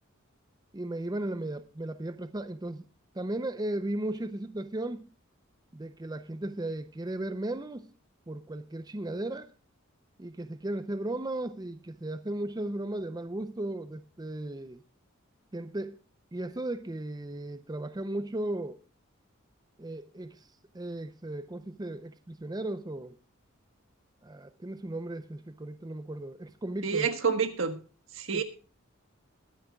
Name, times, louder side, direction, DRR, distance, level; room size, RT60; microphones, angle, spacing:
voice 1, 0.7-2.8 3.1-5.1 5.7-7.9 8.3-9.5 10.2-14.8 15.5-16.0 16.3-18.8 19.8-20.5 20.7-23.2 24.2-27.1 28.3-28.4, right 1 dB, 20° right, 0.6 m, -36 dB
voice 2, 26.8-27.8 28.1-28.4, right 6 dB, 70° right, 1.5 m, -28 dB
21.0 x 10.0 x 2.3 m
head